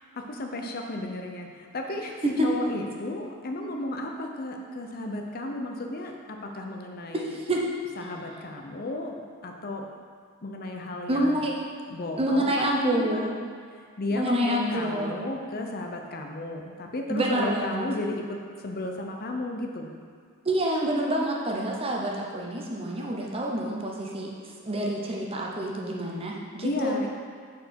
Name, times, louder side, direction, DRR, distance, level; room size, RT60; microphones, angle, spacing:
voice 1, 0.1-7.4 8.0-9.9 10.4-11.5 11.9-13.3 14.0-18.4 18.6-19.9 26.6-27.1, left 1 dB, 45° left, 2 dB, 0.6 m, -33 dB
voice 2, 7.1-7.6 11.1-11.6 12.2-13.3 14.1-15.1 17.1-17.9 20.4-24.3 24.6-27.0, right 1 dB, 25° right, -2 dB, 0.8 m, -27 dB
6.6 x 4.5 x 5.2 m, 2.1 s
head